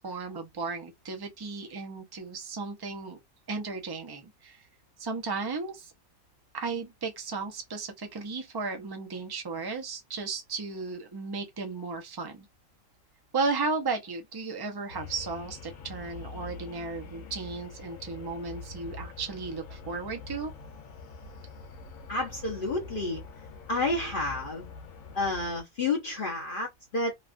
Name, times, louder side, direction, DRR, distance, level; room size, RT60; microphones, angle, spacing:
voice 1, 0.0-3.2 3.5-4.6 5.0-5.9 6.5-12.5 13.3-20.5, right 4 dB, 25° right, 0.5 m, -35 dB
sound 1, 14.9-25.6, left 4 dB, 80° left, 1.2 m, -44 dB
voice 2, 22.1-23.2 23.7-24.7 25.1-27.1, left 2 dB, 45° left, 0.9 m, -30 dB
3.0 x 2.3 x 2.5 m
omnidirectional pair, 1.4 m